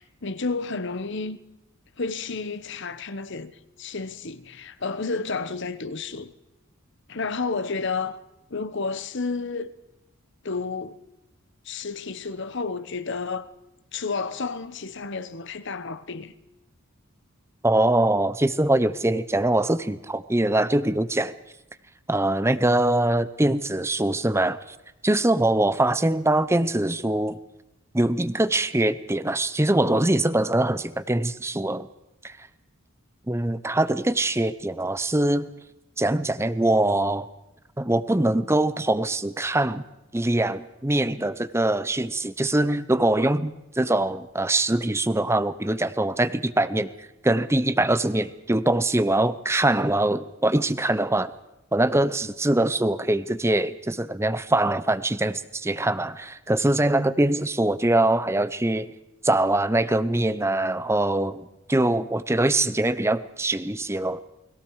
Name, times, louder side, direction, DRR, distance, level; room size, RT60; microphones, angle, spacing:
voice 1, 0.0-1.4 2.0-3.5 3.8-6.3 7.1-8.2 8.5-9.7 10.4-11.0 11.6-13.5 13.9-16.3, left 4 dB, 55° left, 1.0 m, -31 dB
voice 2, 17.6-21.3 22.1-24.6 25.0-27.4 27.9-31.9 32.2-32.3 33.3-35.5 36.0-37.3 37.8-39.8 40.1-46.9 47.2-51.3 51.7-58.9 59.2-64.2, right 1 dB, 10° right, 0.7 m, -23 dB
29.5 x 21.5 x 4.8 m
head